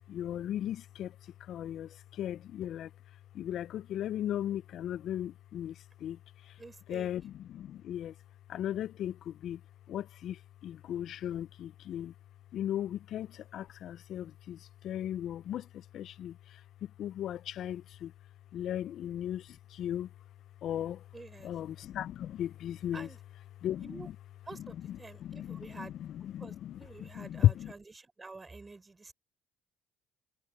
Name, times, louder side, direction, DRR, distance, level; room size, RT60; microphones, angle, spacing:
voice 1, 0.1-2.9 3.3-6.6 6.9-8.1 8.5-9.6 9.9-12.1 12.5-18.1 18.5-20.1 20.6-21.0 21.4-23.1 23.6-24.2 24.5-27.7, left 11 dB, 65° left, 0.4 m, -36 dB
voice 2, 6.6-7.1 21.1-21.5 22.9-23.2 23.8-24.1 24.4-25.9 26.4-29.1, right 3 dB, 20° right, 4.9 m, -49 dB
cardioid pair, 100°, 0 cm